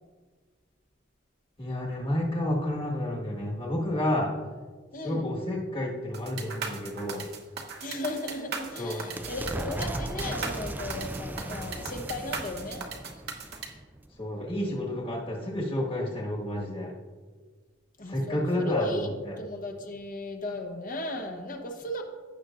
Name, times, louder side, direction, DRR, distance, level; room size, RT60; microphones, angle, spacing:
voice 1, 1.6-4.3 5.0-7.2 8.8-9.1 14.2-16.9 18.1-19.4, left 1 dB, 30° left, -2 dB, 1.6 m, -30 dB
voice 2, 4.9-5.3 7.8-12.8 18.0-22.0, left 1 dB, 45° left, 4 dB, 1.0 m, -35 dB
sound 1, 6.1-13.7, right 5 dB, 55° right, 1.0 m, -37 dB
sound 2, 8.0-14.5, right 1 dB, 10° right, 0.3 m, -38 dB
16.0 x 6.3 x 2.5 m, 1.5 s
head